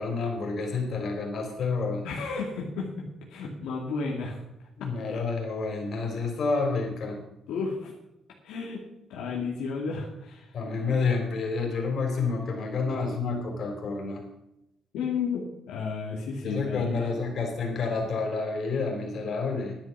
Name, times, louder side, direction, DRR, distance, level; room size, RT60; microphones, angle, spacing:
voice 1, 0.0-2.1 4.8-7.2 10.5-14.2 16.4-19.8, left 4 dB, 55° left, 1 dB, 4.1 m, -29 dB
voice 2, 2.0-2.9 3.3-4.4 4.8-4.9 7.5-7.9 8.4-8.8 9.1-10.5 14.9-17.1, left 5 dB, 90° left, -3 dB, 2.3 m, -32 dB
11.0 x 10.0 x 6.1 m, 0.86 s
cardioid pair, 90°, 0 cm